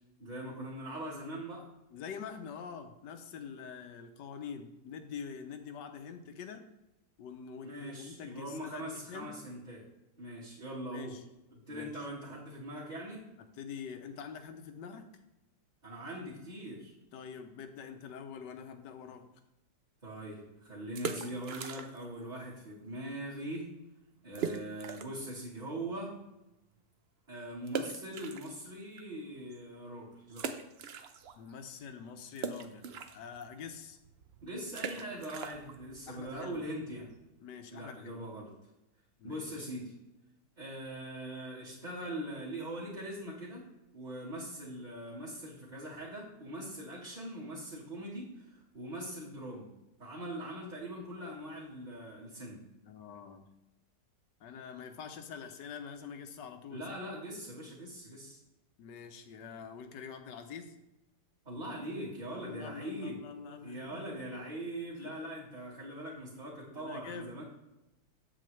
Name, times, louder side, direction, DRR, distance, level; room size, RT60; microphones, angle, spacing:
voice 1, 0.2-1.7 7.6-9.8 10.2-11.1 11.7-13.2 15.8-16.9 20.0-23.7 24.2-26.1 27.3-30.6 34.4-37.1 37.7-38.5 39.2-39.9 40.6-43.6 43.9-49.7 50.0-52.6 56.7-58.4 61.5-63.2 63.6-67.4, right 1 dB, 25° right, -8 dB, 1.7 m, -41 dB
voice 2, 1.9-6.7 7.2-9.4 10.9-11.2 11.7-12.1 13.6-15.1 17.1-19.3 31.3-34.0 36.1-36.7 37.4-38.3 39.2-39.7 52.8-53.5 54.4-56.9 58.8-60.7 62.4-64.3 64.9-65.2 66.7-67.4, left 6 dB, 90° left, 7 dB, 1.4 m, -45 dB
sound 1, 20.9-22.2 22.4-22.5 23.1-23.3 23.5-23.6 24.3-25.3 25.7-25.8 27.7-29.0 29.5-29.6 30.3-31.5 31.8-37.3, right 6 dB, 85° right, 0.5 m, -41 dB
7.6 x 7.6 x 3.2 m, 0.95 s
omnidirectional pair, 1.8 m